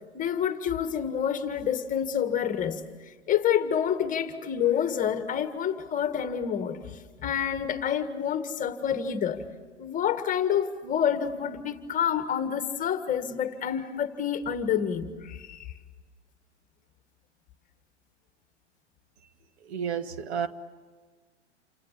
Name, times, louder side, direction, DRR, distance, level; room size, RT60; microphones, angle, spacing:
voice 1, 0.1-2.8 3.1-9.4 9.8-15.7, left 8 dB, 20° left, 1.8 m, -28 dB
voice 2, 19.6-20.5, right 7 dB, 65° right, 1.5 m, -31 dB
28.5 x 26.0 x 7.5 m
hypercardioid pair, 110°, 36 cm